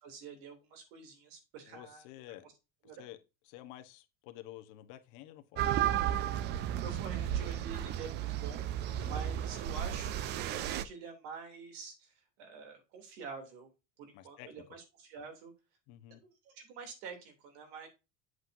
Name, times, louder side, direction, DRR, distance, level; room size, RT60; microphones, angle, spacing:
voice 1, 0.0-2.1 2.4-2.5 2.8-3.1 6.5-8.7 9.1-13.7 14.0-15.5 16.1-17.9, right 5 dB, 80° right, 3.0 m, -47 dB
voice 2, 1.7-2.4 2.9-3.2 3.4-5.8 8.9-9.1 14.1-14.5 15.9-16.2, left 14 dB, 65° left, 1.2 m, -50 dB
sound 1, 5.6-10.8, right 11 dB, 35° right, 0.4 m, -33 dB
7.9 x 7.7 x 2.7 m
cardioid pair, 170°, 32 cm